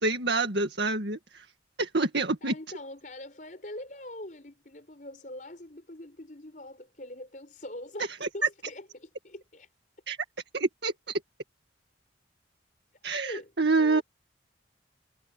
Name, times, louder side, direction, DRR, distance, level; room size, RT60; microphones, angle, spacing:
voice 1, 0.0-1.5 1.8-2.5 8.2-8.3 10.1-10.2 10.5-10.9 13.0-14.0, right 3 dB, 65° right, 1.9 m, -27 dB
voice 2, 2.4-9.7 13.2-13.5 13.8-14.0, left 1 dB, 45° left, 5.4 m, -43 dB
head